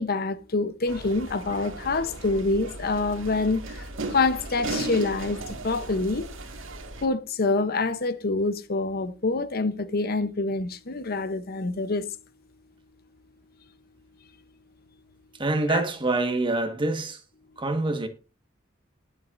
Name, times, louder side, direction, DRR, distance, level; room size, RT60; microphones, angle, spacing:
voice 1, 0.0-6.3 7.0-12.2 15.7-15.8, left 3 dB, 50° left, 0.8 m, -26 dB
sound 1, 0.9-7.1, right 2 dB, 75° right, 1.9 m, -36 dB
voice 2, 15.3-17.2 17.6-18.1, right 2 dB, 25° right, 1.4 m, -26 dB
20.0 x 7.4 x 2.5 m
head